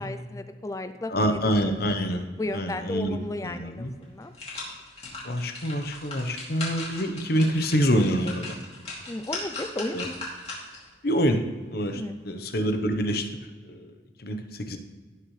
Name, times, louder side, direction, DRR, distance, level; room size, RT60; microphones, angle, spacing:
voice 1, 0.0-1.4 1.7-1.8 2.4-4.3 9.1-10.2 11.8-12.2, left 2 dB, 15° left, 9 dB, 0.3 m, -34 dB
voice 2, 1.1-2.2 2.5-3.2 3.4-3.9 5.0-8.6 9.9-10.0 11.0-11.4 11.7-13.4 13.6-13.9 14.2-14.8, equal, 55° left, 6 dB, 0.9 m, -26 dB
sound 1, 3.5-3.6 4.0-10.9 11.3-11.4, left 2 dB, 35° left, 2.8 m, -38 dB
16.5 x 6.4 x 3.2 m, 1.4 s
head